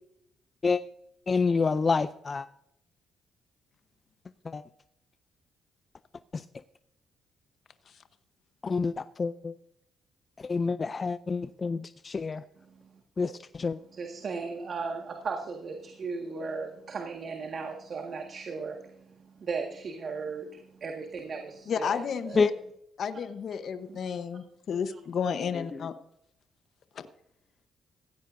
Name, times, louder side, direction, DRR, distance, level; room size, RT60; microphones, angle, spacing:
voice 1, 1.3-2.5 4.5-4.6 6.3-6.4 8.6-9.5 10.4-12.4 13.2-13.8 22.4-22.5, left 4 dB, 35° left, 13 dB, 0.4 m, -28 dB
voice 2, 13.9-22.5 23.9-24.0, right 4 dB, 50° right, 3 dB, 1.7 m, -37 dB
voice 3, 21.7-22.5 23.0-25.9 26.9-27.1, left 7 dB, 60° left, 10 dB, 0.9 m, -32 dB
16.0 x 15.5 x 2.6 m, 0.77 s
cardioid pair, 90°, 0 cm